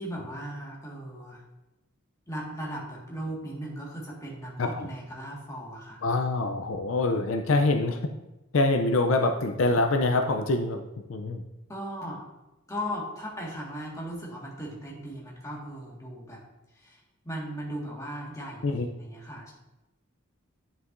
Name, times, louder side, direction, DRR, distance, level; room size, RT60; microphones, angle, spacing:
voice 1, 0.0-1.4 2.3-6.1 11.7-12.2 12.7-16.4 16.7-19.5, equal, 15° left, -4 dB, 1.6 m, -37 dB
voice 2, 6.0-8.0 8.5-11.4 18.6-18.9, left 2 dB, 70° left, 5 dB, 0.5 m, -25 dB
9.6 x 5.6 x 2.6 m, 0.99 s
head